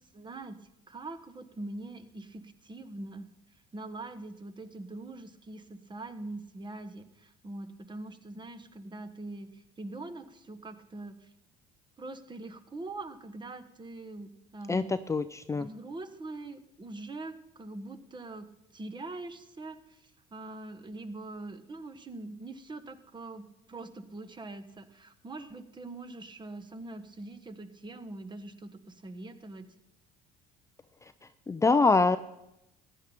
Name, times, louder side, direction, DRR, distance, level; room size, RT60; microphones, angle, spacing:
voice 1, 0.1-0.6 0.9-3.3 3.7-11.3 12.0-14.9 15.6-18.5 18.7-29.7, right 2 dB, 25° right, 9 dB, 1.3 m, -43 dB
voice 2, 14.7-15.7 31.0-31.1 31.5-32.2, left 3 dB, 15° left, 11 dB, 0.5 m, -25 dB
15.0 x 10.0 x 4.5 m, 0.86 s
supercardioid pair, 80°, 19 cm